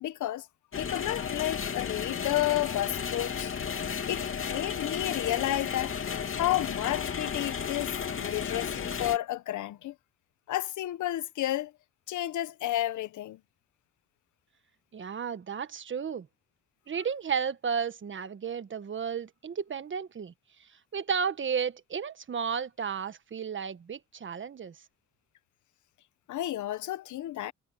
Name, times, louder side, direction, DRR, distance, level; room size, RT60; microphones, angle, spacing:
voice 1, 0.0-0.5 0.8-3.5 4.1-6.0 6.3-9.9 10.5-11.7 12.1-13.4 26.3-27.5, left 14 dB, 75° left, 1.1 m, -31 dB
sound 1, 0.7-9.2, left 7 dB, 45° left, 2.8 m, -33 dB
voice 2, 14.9-16.3 16.9-20.3 20.9-24.7, right 6 dB, 40° right, 1.4 m, -33 dB
cardioid pair, 90°, 30 cm